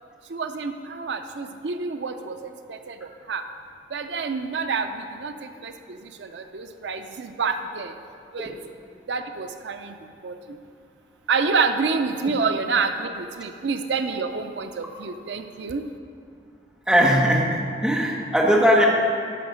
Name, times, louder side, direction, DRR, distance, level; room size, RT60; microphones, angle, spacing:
voice 1, 0.3-3.4 3.9-7.9 8.3-8.5 9.1-9.9 10.2-10.6 11.3-15.8, right 4 dB, 80° right, 8 dB, 0.5 m, -28 dB
voice 2, 16.9-18.9, equal, 5° right, -3 dB, 1.2 m, -19 dB
11.5 x 6.2 x 5.1 m, 2.4 s
head